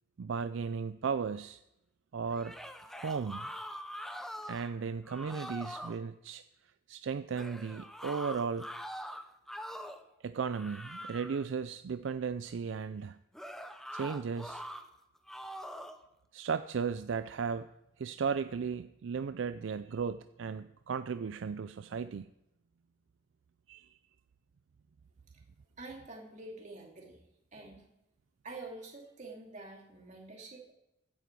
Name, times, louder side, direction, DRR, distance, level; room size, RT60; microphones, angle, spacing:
voice 1, 0.2-1.6 2.1-2.6 2.9-3.5 4.5-6.4 6.9-8.7 10.2-13.2 13.9-14.6 16.3-17.7 18.0-22.3 23.7-23.9, right 6 dB, 70° right, 12 dB, 0.4 m, -35 dB
sound 1, 2.3-4.7 5.1-6.0 7.3-10.1 10.5-11.5 13.3-14.8 15.3-16.0, equal, ahead, 0.7 m, -43 dB
voice 2, 25.8-27.2 27.5-27.9 28.4-30.7, right 2 dB, 40° right, 0 dB, 2.7 m, -47 dB
15.5 x 9.1 x 4.7 m, 0.88 s
head